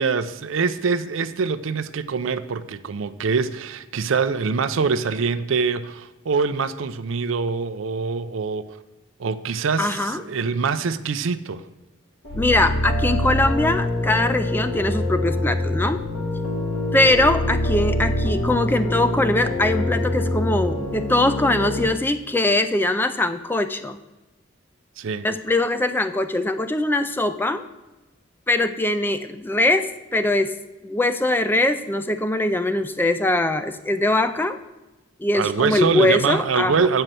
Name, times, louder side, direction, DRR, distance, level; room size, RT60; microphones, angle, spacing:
voice 1, 0.0-8.7 9.2-11.6 25.0-25.3 35.3-37.0, right 5 dB, 80° right, 0.5 m, -24 dB
voice 2, 9.8-10.2 12.3-16.0 16.9-24.0 25.2-27.6 28.5-30.5 30.8-34.6 35.2-36.8, left 2 dB, 10° left, 0.3 m, -22 dB
sound 1, 12.2-21.8, left 1 dB, 75° left, 1.9 m, -25 dB
7.8 x 5.5 x 7.5 m
head